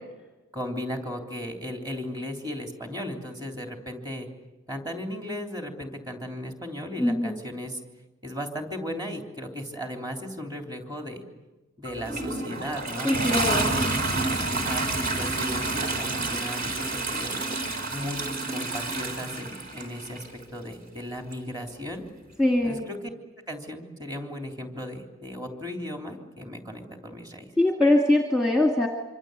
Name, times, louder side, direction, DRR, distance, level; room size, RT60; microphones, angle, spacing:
voice 1, 0.5-4.3 4.7-7.8 8.2-11.2 11.8-13.8 14.3-17.4 17.9-22.0 22.6-23.1 23.5-27.4, equal, 20° right, 3 dB, 3.4 m, -36 dB
voice 2, 7.0-7.4 13.0-13.7 22.4-22.8 27.6-28.9, left 1 dB, 5° right, 1 dB, 2.1 m, -22 dB
Toilet flush, 11.8-20.3 21.3-21.4, right 2 dB, 40° right, 4.1 m, -29 dB
26.0 x 25.5 x 8.1 m, 1.1 s
head